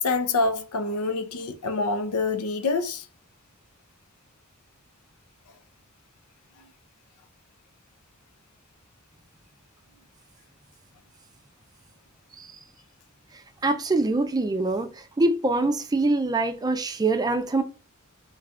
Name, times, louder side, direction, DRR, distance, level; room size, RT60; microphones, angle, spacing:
voice 1, 0.0-3.0, left 3 dB, 90° left, 0.6 m, -26 dB
voice 2, 13.6-14.9 15.2-17.6, right 2 dB, 20° right, 0.4 m, -24 dB
4.0 x 2.3 x 3.5 m
head